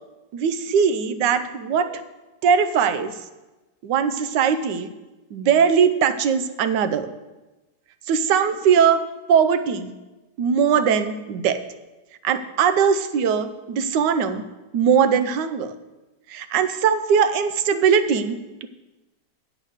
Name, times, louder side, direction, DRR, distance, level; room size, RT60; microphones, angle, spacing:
voice 1, 0.3-2.0 2.4-3.1 3.8-4.9 5.3-7.1 8.1-9.0 9.3-9.9 10.4-11.6 12.2-14.4 14.7-15.7 16.3-18.7, right 7 dB, 80° right, 11 dB, 1.3 m, -20 dB
8.7 x 7.4 x 6.4 m, 1.1 s
omnidirectional pair, 1.9 m